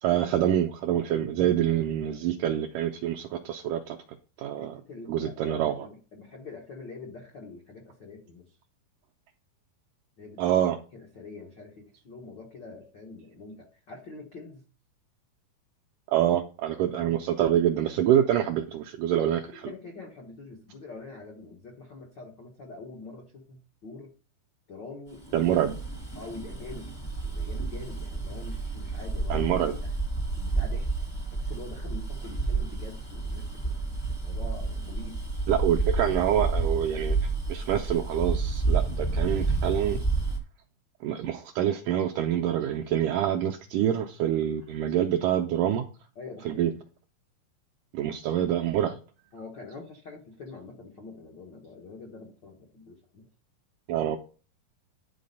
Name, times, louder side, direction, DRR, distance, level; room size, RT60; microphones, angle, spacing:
voice 1, 0.0-4.0 4.4-4.8 5.1-5.7 10.4-10.8 16.1-19.4 25.3-25.8 29.3-29.7 35.5-37.2 37.5-40.0 41.0-45.8 46.5-46.7 47.9-49.0 53.9-54.2, right 11 dB, 85° right, 4 dB, 1.9 m, -26 dB
voice 2, 4.6-8.6 10.2-10.5 10.9-14.6 16.8-17.2 19.2-24.1 24.7-25.5 26.1-26.9 27.2-29.9 30.4-30.9 31.3-33.8 34.1-35.2 46.1-46.8 49.3-53.3, left 3 dB, 80° left, 0 dB, 1.0 m, -45 dB
Bus, 25.2-40.4, right 3 dB, 30° left, 0.4 m, -30 dB
10.5 x 4.2 x 5.4 m, 0.36 s
omnidirectional pair, 4.3 m